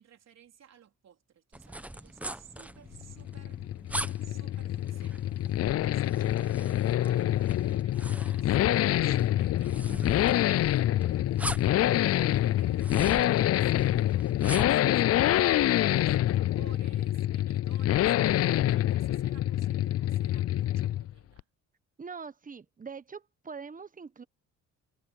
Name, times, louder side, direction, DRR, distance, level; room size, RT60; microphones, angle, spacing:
voice 1, 0.0-3.6 4.2-8.6 8.9-21.4, right 9 dB, 60° right, 4.1 m, -56 dB
sound 1, 1.5-14.9, right 1 dB, 5° right, 1.1 m, -42 dB
Accelerating revving vroom, 3.0-21.1 21.4-21.5, left 13 dB, 55° left, 0.5 m, -26 dB
voice 2, 22.0-24.2, right 5 dB, 25° right, 1.2 m, -43 dB
cardioid pair, 90°, 30 cm